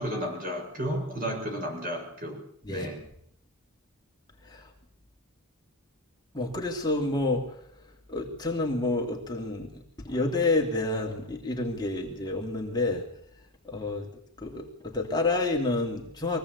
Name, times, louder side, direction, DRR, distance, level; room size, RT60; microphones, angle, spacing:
voice 1, 0.0-2.4 2.7-3.0, equal, 40° right, 3 dB, 7.1 m, -33 dB
voice 2, 6.3-7.4 8.1-9.7 10.0-13.1 13.7-14.1 14.4-16.4, left 2 dB, 20° left, 0 dB, 2.8 m, -29 dB
23.5 x 17.0 x 8.3 m, 0.64 s
head